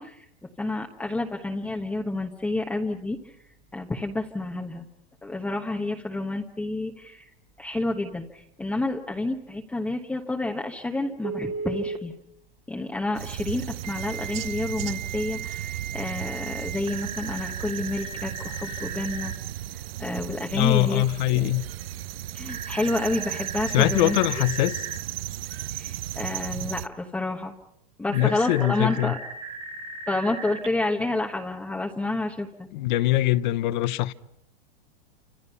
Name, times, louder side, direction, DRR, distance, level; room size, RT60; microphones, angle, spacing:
voice 1, 0.0-3.4 3.7-4.9 5.2-7.3 7.6-12.1 12.7-21.5 22.3-24.2 25.7-27.5 28.0-29.2 30.1-32.7 33.0-33.1, left 2 dB, 5° left, 1.1 m, -29 dB
Telephone, 11.2-12.0 13.8-19.4 22.5-25.0 28.1-30.7, right 5 dB, 20° right, 1.5 m, -37 dB
sound 1, 13.2-26.9, right 12 dB, 75° right, 0.9 m, -35 dB
voice 2, 20.5-21.6 23.7-24.8 28.1-29.1 32.7-34.1, left 16 dB, 50° left, 1.0 m, -23 dB
29.5 x 26.5 x 5.6 m
supercardioid pair, 155°, 30 cm